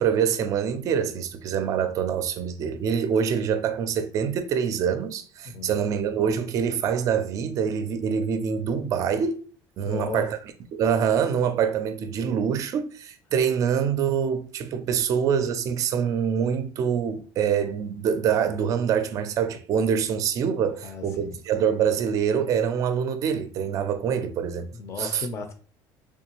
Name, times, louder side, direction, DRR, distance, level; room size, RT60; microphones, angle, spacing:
voice 1, 0.0-9.4 9.8-10.4 10.7-24.7 25.0-25.3, right 7 dB, 40° right, 0.5 m, -25 dB
voice 2, 5.4-5.9 9.8-10.3 20.8-21.4 24.7-25.5, left 4 dB, 35° left, 0.6 m, -35 dB
3.5 x 3.2 x 3.0 m
cardioid pair, 155°, 8 cm